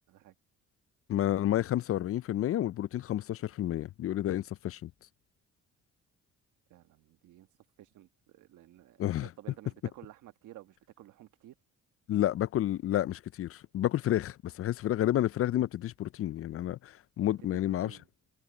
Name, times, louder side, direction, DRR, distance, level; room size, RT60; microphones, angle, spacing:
voice 1, 1.1-4.9 9.0-9.3 12.1-17.9, left 12 dB, 50° left, 0.4 m, -30 dB
voice 2, 6.7-7.5 7.8-11.5 17.4-18.1, right 14 dB, 85° right, 1.5 m, -53 dB
cardioid pair, 90°, 30 cm